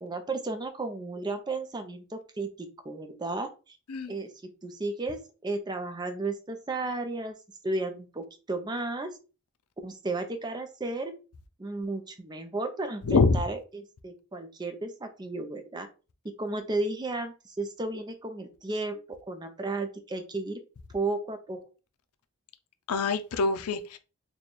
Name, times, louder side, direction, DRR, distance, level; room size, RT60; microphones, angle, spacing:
voice 1, 0.0-3.5 4.1-4.3 4.6-7.3 7.6-9.1 9.8-11.1 11.6-15.9 16.4-20.6 20.9-21.6, right 2 dB, 20° right, 0.5 m, -33 dB
voice 2, 13.1-13.4 22.9-24.0, left 4 dB, 85° left, 0.5 m, -24 dB
3.2 x 2.3 x 4.0 m
head